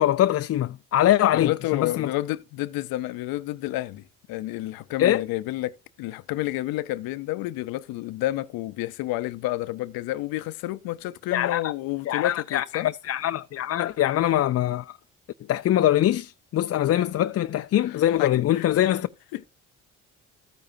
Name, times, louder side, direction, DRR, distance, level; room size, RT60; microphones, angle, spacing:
voice 1, 0.0-2.1 5.0-5.2 11.3-11.7 12.1-15.0 15.5-19.1, left 12 dB, 45° left, 0.4 m, -23 dB
voice 2, 1.3-12.9 17.9-18.7 19.3-19.5, left 16 dB, 85° left, 0.6 m, -30 dB
14.0 x 9.0 x 2.6 m
supercardioid pair, 75°, 35 cm